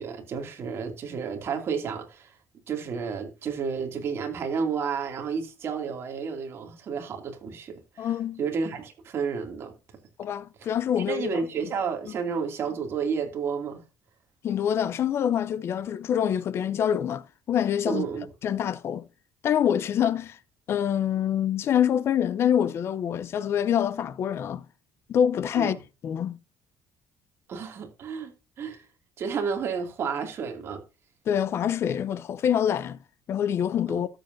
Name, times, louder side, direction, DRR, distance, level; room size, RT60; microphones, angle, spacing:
voice 1, 0.0-2.4 2.7-8.1 8.4-9.7 10.6-10.7 11.0-13.8 17.9-18.3 25.5-25.8 27.5-28.9 29.2-30.8 33.9-34.0, right 6 dB, 40° right, 2.5 m, -31 dB
voice 2, 8.0-8.4 10.2-11.4 14.4-18.1 18.4-19.0 19.4-20.4 20.7-24.6 25.1-25.8 26.0-26.4 31.3-33.0 33.3-34.1, left 9 dB, 40° left, 0.6 m, -25 dB
13.0 x 8.1 x 2.7 m
cardioid pair, 160°, 6 cm